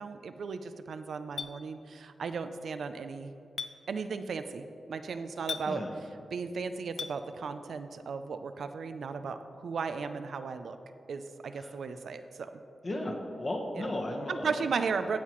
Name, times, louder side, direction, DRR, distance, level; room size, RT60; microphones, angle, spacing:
voice 1, 0.0-3.3 3.9-5.8 6.3-10.8 11.1-12.6 13.7-13.9 14.3-15.2, right 5 dB, 75° right, 9 dB, 0.5 m, -35 dB
Chink clink, 1.4-1.5 3.6-3.7 5.5-5.7 7.0-7.1, left 6 dB, 85° left, 0.4 m, -35 dB
voice 2, 12.8-14.7, left 1 dB, 35° left, 1 dB, 1.2 m, -35 dB
16.5 x 5.7 x 3.1 m, 2.5 s
wide cardioid pair, 110°, 0 cm